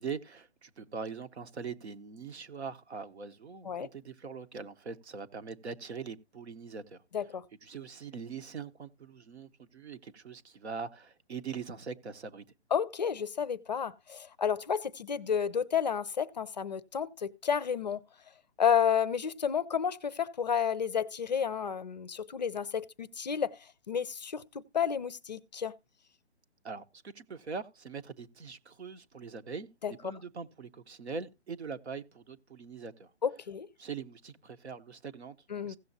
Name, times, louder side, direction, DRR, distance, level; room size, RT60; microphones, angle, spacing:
voice 1, 0.0-7.3 7.6-12.4 26.6-33.1 33.8-35.8, right 5 dB, 75° right, 1.1 m, -42 dB
voice 2, 12.7-18.0 18.6-23.6 23.9-25.7 29.8-29.9 33.2-33.7 35.5-35.8, left 7 dB, 40° left, 0.5 m, -31 dB
16.0 x 7.0 x 2.7 m
hypercardioid pair, 155°, 34 cm